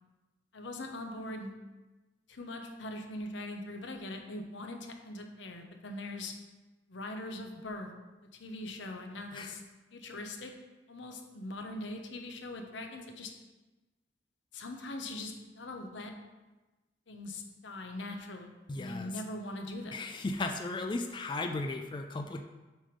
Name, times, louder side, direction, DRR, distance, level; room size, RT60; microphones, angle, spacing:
voice 1, 0.5-1.5 2.3-6.3 6.9-7.9 8.3-9.6 9.9-10.5 10.9-13.3 14.5-16.1 17.1-20.0, left 1 dB, 85° left, 4 dB, 0.9 m, -41 dB
voice 2, 18.7-19.1 19.9-22.4, left 2 dB, 25° left, 4 dB, 0.3 m, -35 dB
7.3 x 3.4 x 5.1 m, 1.1 s
head